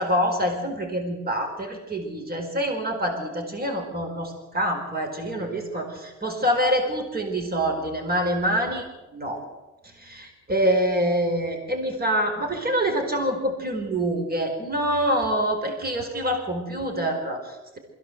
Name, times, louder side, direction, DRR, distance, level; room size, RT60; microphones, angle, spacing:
voice 1, 0.0-8.8 9.1-9.5 9.8-17.8, equal, 30° right, 3 dB, 4.6 m, -26 dB
22.0 x 16.0 x 7.9 m, 1.1 s
cardioid pair, 90°, 30 cm